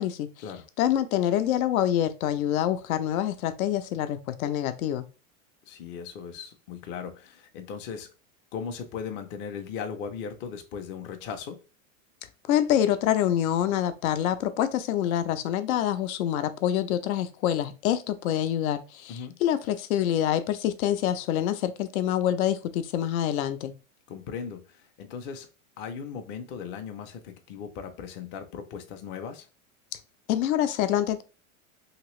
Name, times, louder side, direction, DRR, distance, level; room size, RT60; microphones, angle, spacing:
voice 1, 0.8-5.0 12.5-23.7 30.3-31.2, left 11 dB, 85° left, 0.6 m, -26 dB
voice 2, 5.7-8.1 8.5-11.6 19.1-19.4 24.1-25.5 25.8-29.5, left 6 dB, 30° left, 0.4 m, -38 dB
2.9 x 2.8 x 3.0 m
supercardioid pair, 140°, 42 cm